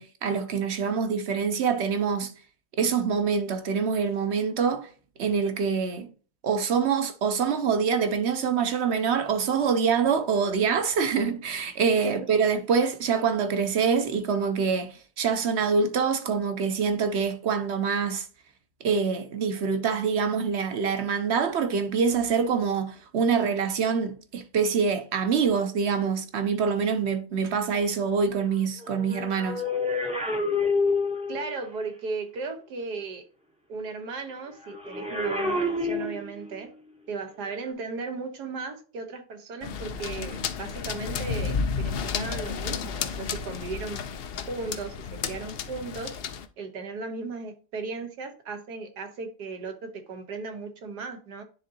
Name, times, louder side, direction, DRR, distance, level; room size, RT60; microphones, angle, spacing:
voice 1, 0.0-2.3 2.8-4.9 5.2-6.1 6.4-18.3 18.8-29.6, right 6 dB, 55° right, 0.8 m, -25 dB
voice 2, 12.0-12.5 31.3-33.2 33.7-36.7 37.1-44.0 44.5-46.1 46.6-51.4, right 4 dB, 85° right, 1.7 m, -36 dB
sound 1, 28.8-31.6 34.7-36.6 37.5-37.7, left 3 dB, 5° right, 0.6 m, -28 dB
sound 2, 39.6-46.5, left 6 dB, 75° left, 0.5 m, -32 dB
10.0 x 3.7 x 2.7 m
omnidirectional pair, 1.7 m